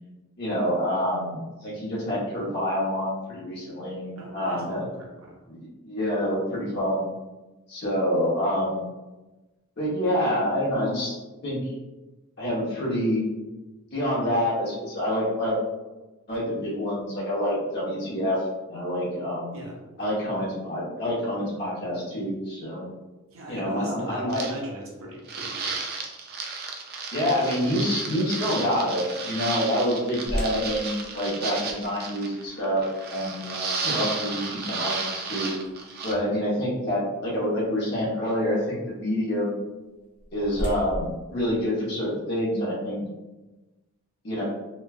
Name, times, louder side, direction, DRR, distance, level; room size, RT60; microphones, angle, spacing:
voice 1, 0.4-4.8 5.5-7.1 7.7-8.8 9.8-11.6 12.4-13.3 13.9-15.6 16.3-18.4 18.7-19.6 20.0-22.8 23.5-24.4 27.1-32.8 33.1-35.5 36.0-39.6 40.3-43.0 44.2-44.4, equal, 55° left, -6 dB, 1.0 m, -27 dB
voice 2, 4.1-5.4 19.5-19.8 23.3-25.8, equal, 80° right, -1 dB, 0.7 m, -38 dB
sound 1, 24.3-24.5 25.3-36.1, right 4 dB, 45° right, 0.4 m, -33 dB
sound 2, 30.3-36.2 36.8-36.9 37.5-37.7 39.8-42.4, equal, 35° left, 0.7 m, -38 dB
3.1 x 2.2 x 2.3 m, 1.1 s
head